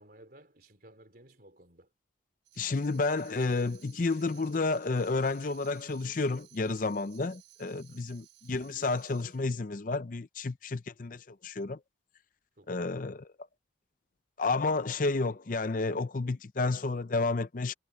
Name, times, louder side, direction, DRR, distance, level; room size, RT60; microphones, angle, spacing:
voice 1, 0.0-1.9 7.8-8.0 12.6-13.0, right 1 dB, 50° right, 3.6 m, -57 dB
Tambourine, 2.4-9.5, right 15 dB, 80° right, 5.6 m, -58 dB
voice 2, 2.6-11.8 12.7-13.3 14.4-17.7, left 3 dB, 45° left, 0.6 m, -31 dB
head